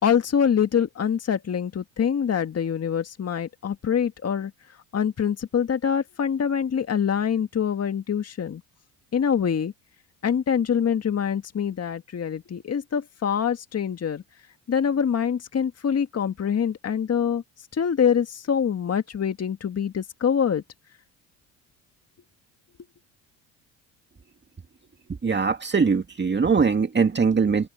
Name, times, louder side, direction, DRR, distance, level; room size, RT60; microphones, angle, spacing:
voice 1, 0.0-4.5 4.9-8.6 9.1-9.7 10.2-14.2 14.7-17.4 17.7-20.6, left 7 dB, 35° left, 1.9 m, -25 dB
voice 2, 25.2-27.7, right 5 dB, 25° right, 2.1 m, -21 dB
open air
hypercardioid pair, 70°, 42 cm